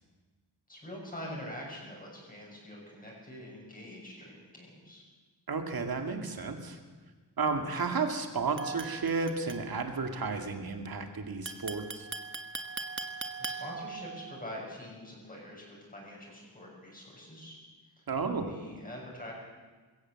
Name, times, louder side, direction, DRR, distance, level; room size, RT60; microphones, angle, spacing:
voice 1, 0.7-5.0 13.4-17.6 18.0-18.1 18.5-19.3, left 1 dB, 20° left, -3 dB, 6.6 m, -44 dB
voice 2, 5.5-6.8 7.4-12.1 18.1-18.5, right 4 dB, 55° right, 5 dB, 2.4 m, -32 dB
sound 1, 8.6-10.0 11.5-14.4, right 4 dB, 30° right, 1.4 m, -40 dB
21.5 x 17.0 x 7.7 m, 1.3 s
wide cardioid pair, 160°, 41 cm